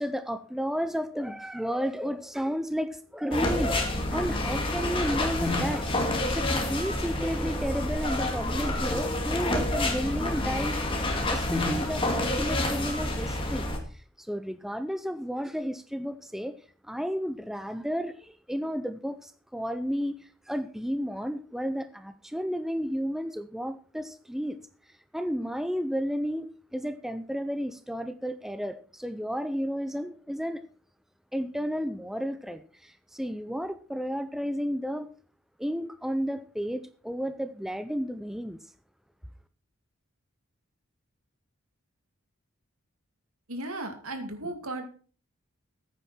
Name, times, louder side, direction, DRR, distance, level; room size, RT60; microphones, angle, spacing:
voice 1, 0.0-5.8 6.3-10.8 11.3-16.6 16.8-20.2 20.5-24.6 25.1-30.6 31.3-35.1 35.6-38.6, equal, ahead, 11 dB, 0.5 m, -32 dB
sound 1, 3.3-13.8, left 1 dB, 25° left, 2.2 m, -28 dB
voice 2, 43.5-44.9, right 2 dB, 85° right, 5 dB, 2.6 m, -35 dB
14.5 x 9.1 x 4.4 m, 0.40 s
head